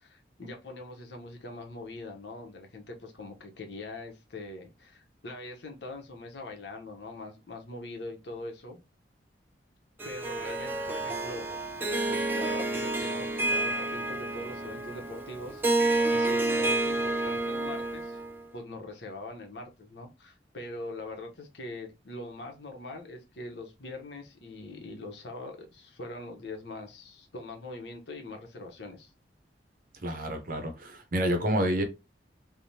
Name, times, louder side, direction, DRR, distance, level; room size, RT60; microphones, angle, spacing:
voice 1, 0.0-8.8 10.0-11.8 12.1-15.6 16.1-18.2 18.5-29.1, left 2 dB, 70° left, 0.8 m, -42 dB
Harp, 10.0-18.4, right 2 dB, 10° right, 0.3 m, -29 dB
voice 2, 30.0-31.8, right 1 dB, 50° right, 0.6 m, -28 dB
3.3 x 2.1 x 2.7 m
head